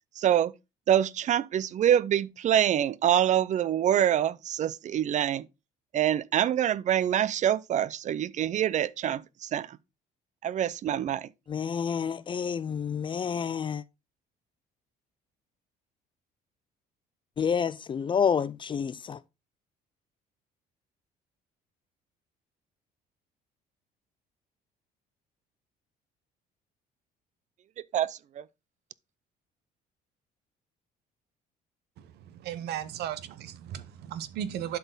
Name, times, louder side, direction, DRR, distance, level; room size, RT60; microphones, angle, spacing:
voice 1, 0.2-0.5 0.9-5.5 5.9-9.8 10.4-11.3 27.9-28.4, right 10 dB, 45° right, 0.5 m, -25 dB
voice 2, 11.5-13.8 17.4-19.2, left 7 dB, 30° left, 0.4 m, -29 dB
voice 3, 32.0-34.8, right 10 dB, 75° right, 0.9 m, -36 dB
11.5 x 4.2 x 3.9 m
cardioid pair, 110°, 17 cm